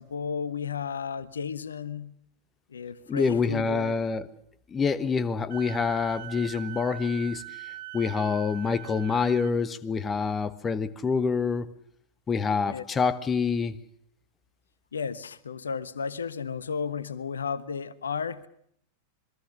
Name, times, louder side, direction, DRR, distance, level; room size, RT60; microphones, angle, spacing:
voice 1, 0.0-2.1 2.7-3.9 12.7-12.8 14.9-18.5, left 6 dB, 70° left, 1.1 m, -33 dB
voice 2, 3.1-4.3 4.7-7.4 7.9-11.7 12.3-13.8, left 5 dB, 20° left, 1.3 m, -26 dB
Wind instrument woodwind instrument, 5.5-9.6, right 15 dB, 55° right, 3.0 m, -42 dB
26.5 x 22.0 x 6.7 m
figure-of-eight pair, 90°, 0 cm